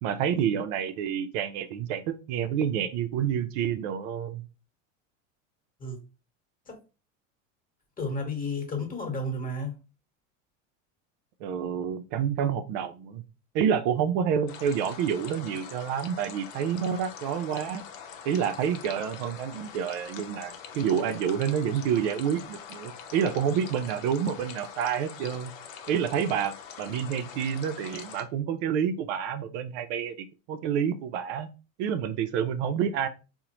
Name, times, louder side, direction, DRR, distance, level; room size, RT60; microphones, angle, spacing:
voice 1, 0.0-4.4 11.4-13.2 13.5-17.8 18.2-25.5 25.9-31.5 31.8-33.1, right 8 dB, 65° right, 0.5 m, -28 dB
voice 2, 8.0-9.8, left 2 dB, 20° left, 1.1 m, -32 dB
sound 1, 14.5-28.2, left 7 dB, 65° left, 0.7 m, -44 dB
3.7 x 2.1 x 2.9 m
hypercardioid pair, 90°, 39 cm